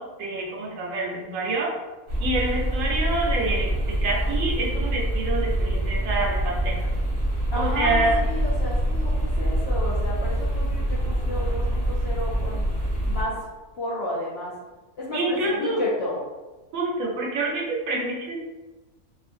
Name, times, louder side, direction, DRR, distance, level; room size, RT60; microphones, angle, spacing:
voice 1, 0.0-1.7 2.2-6.8 7.5-8.2 15.1-15.8 16.7-18.3, right 2 dB, 70° right, -2 dB, 0.9 m, -27 dB
sound 1, 2.1-13.2, right 1 dB, 35° right, 0.8 m, -25 dB
voice 2, 7.5-12.7 13.0-13.4 13.7-14.5 15.0-16.3, left 1 dB, 70° left, -6 dB, 0.6 m, -32 dB
2.5 x 2.4 x 2.5 m, 1.2 s
omnidirectional pair, 1.5 m